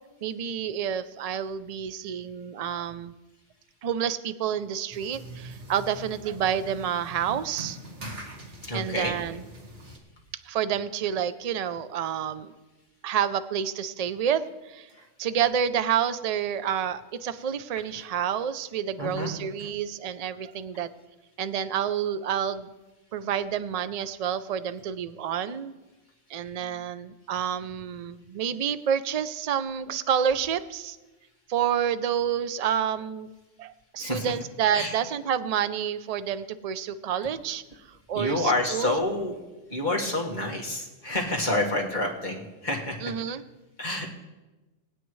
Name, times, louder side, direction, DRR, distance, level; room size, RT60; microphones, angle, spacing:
voice 1, 0.2-3.1 3.8-7.8 8.7-9.5 10.5-12.5 13.0-14.9 15.2-20.9 21.4-22.7 23.1-25.7 26.3-31.0 31.5-33.3 33.6-37.6 38.1-39.0 43.0-43.4, right 8 dB, 50° right, 12 dB, 0.4 m, -29 dB
sound 1, 4.9-10.0, right 1 dB, 70° right, 1.9 m, -43 dB
voice 2, 8.6-9.2 14.9-15.0 19.0-19.3 19.6-19.7 34.0-34.3 34.7-34.9 38.1-39.4 39.7-43.0 43.8-44.1, left 1 dB, 40° left, -2 dB, 1.8 m, -28 dB
20.0 x 9.2 x 3.1 m, 1.1 s
omnidirectional pair, 1.2 m